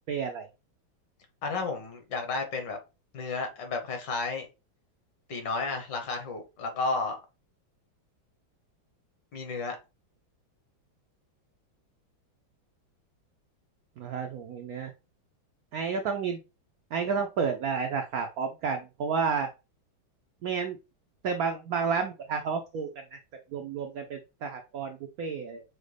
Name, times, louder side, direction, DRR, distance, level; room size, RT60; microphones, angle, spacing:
voice 1, 0.1-0.5 14.0-14.9 15.7-16.4 16.9-19.5 20.4-20.8 21.2-22.9 23.5-25.6, right 5 dB, 80° right, 5 dB, 0.8 m, -31 dB
voice 2, 1.4-2.8 3.1-4.5 5.3-7.2 9.3-9.8, left 3 dB, 65° left, 4 dB, 1.6 m, -32 dB
6.2 x 2.1 x 3.2 m, 0.28 s
omnidirectional pair, 2.2 m